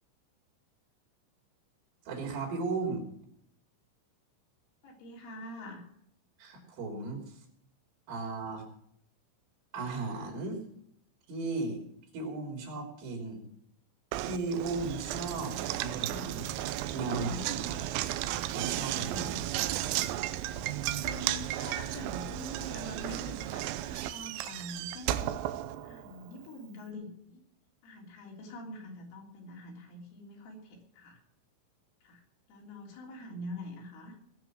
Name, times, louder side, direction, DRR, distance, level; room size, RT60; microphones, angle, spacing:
voice 1, 2.1-3.0 6.4-7.4 8.1-8.6 9.7-10.6 11.3-11.8 12.1-13.4 14.2-16.6 16.9-17.8 18.5-19.5, right 3 dB, 70° right, 1 dB, 5.7 m, -36 dB
voice 2, 4.8-5.9 20.7-25.3 25.8-27.4 27.8-31.2 32.0-32.2 32.5-34.2, left 1 dB, 70° left, -1 dB, 5.6 m, -44 dB
Knock, 14.1-26.3, right 13 dB, 85° right, 3.5 m, -34 dB
20.5 x 7.7 x 6.2 m, 0.71 s
omnidirectional pair, 5.9 m